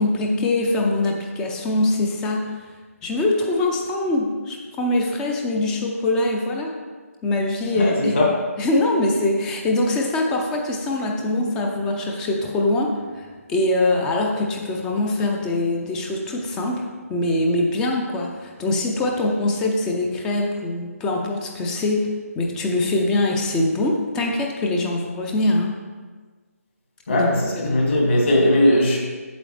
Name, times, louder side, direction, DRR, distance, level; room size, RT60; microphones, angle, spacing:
voice 1, 0.0-2.6 3.0-6.7 7.2-8.2 8.6-25.8 27.1-27.3 27.5-28.0, left 2 dB, 5° left, 1 dB, 0.4 m, -23 dB
voice 2, 7.7-8.3 27.1-29.0, left 1 dB, 50° left, -2 dB, 2.5 m, -18 dB
8.0 x 7.4 x 3.3 m, 1.4 s
figure-of-eight pair, 155°, 8 cm